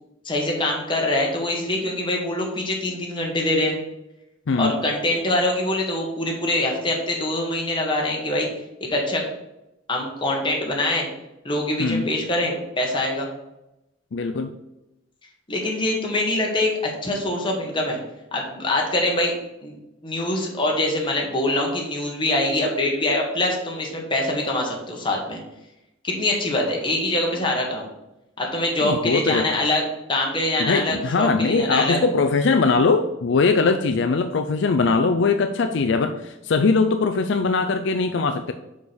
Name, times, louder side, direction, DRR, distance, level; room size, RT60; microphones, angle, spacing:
voice 1, 0.2-3.8 4.6-8.5 8.8-9.2 9.9-11.1 11.4-13.3 15.5-18.0 18.3-19.3 19.6-19.7 20.0-25.4 26.0-27.8 28.4-29.8 30.1-32.0, left 1 dB, 25° left, 0 dB, 1.5 m, -24 dB
voice 2, 4.5-4.8 11.8-12.1 14.1-14.5 28.8-29.5 30.6-38.5, left 4 dB, 65° left, 7 dB, 0.4 m, -21 dB
5.3 x 5.0 x 6.2 m, 0.92 s
head